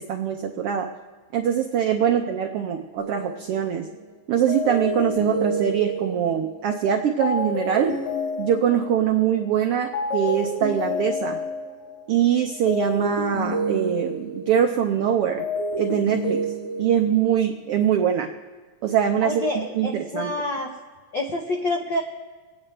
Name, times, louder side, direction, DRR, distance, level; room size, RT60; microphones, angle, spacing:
voice 1, 0.1-0.9 1.3-3.9 4.3-8.0 8.4-11.4 12.1-15.4 15.8-16.4 16.8-18.3 18.8-20.3, right 9 dB, 90° right, 4 dB, 1.2 m, -23 dB
sound 1, 3.0-4.0 4.5-9.6 9.9-14.9 15.2-17.4, equal, 50° left, 2.6 m, -29 dB
voice 2, 19.2-20.7 21.1-22.0, left 1 dB, 80° left, 1 dB, 1.0 m, -27 dB
25.5 x 9.2 x 3.3 m, 1.4 s
omnidirectional pair, 3.4 m